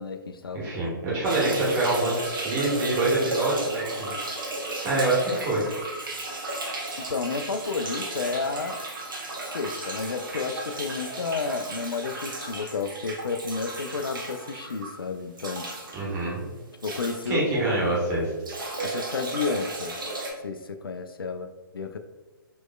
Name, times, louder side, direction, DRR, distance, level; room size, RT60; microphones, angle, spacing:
voice 1, 0.0-0.6 5.5-5.6 7.0-8.8 9.4-15.7 16.8-17.9 18.8-20.0 20.4-22.0, left 4 dB, 80° left, 8 dB, 0.4 m, -31 dB
voice 2, 0.5-4.1 4.8-5.6 15.9-16.4 17.3-18.3, right 2 dB, 20° right, -6 dB, 1.4 m, -25 dB
sound 1, 1.2-17.9 18.2-20.3, right 2 dB, 65° right, 1.0 m, -34 dB
4.3 x 3.0 x 2.3 m, 1.2 s
figure-of-eight pair, 130°, 12 cm